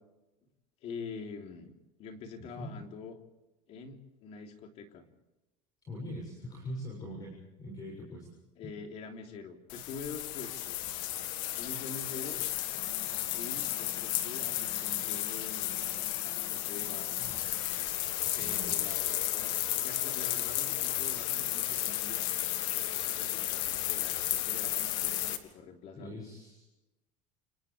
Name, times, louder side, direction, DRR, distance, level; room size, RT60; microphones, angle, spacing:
voice 1, 0.8-1.7 2.0-3.2 3.7-5.0 8.6-10.8 11.6-12.4 13.3-15.9 16.2-17.2 18.4-22.2 22.7-26.2, left 5 dB, 45° left, 3 dB, 3.4 m, -45 dB
voice 2, 5.9-7.3 7.6-8.3 18.4-18.8 26.0-26.7, equal, 25° left, -1 dB, 7.0 m, -42 dB
sound 1, 9.7-25.4, left 14 dB, 70° left, 2.2 m, -33 dB
29.5 x 28.5 x 3.4 m, 0.98 s
cardioid pair, 165°, 16 cm